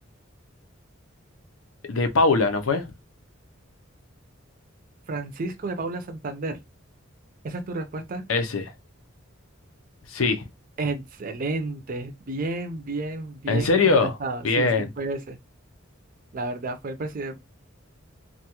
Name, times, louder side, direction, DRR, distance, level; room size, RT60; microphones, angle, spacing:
voice 1, 1.9-2.9 8.3-8.7 10.1-10.4 13.5-14.2 14.4-14.9, left 3 dB, 80° left, 0.6 m, -21 dB
voice 2, 5.1-6.6 7.4-8.2 10.8-15.4 16.3-17.5, right 2 dB, 45° right, 0.5 m, -31 dB
2.4 x 2.3 x 2.8 m
head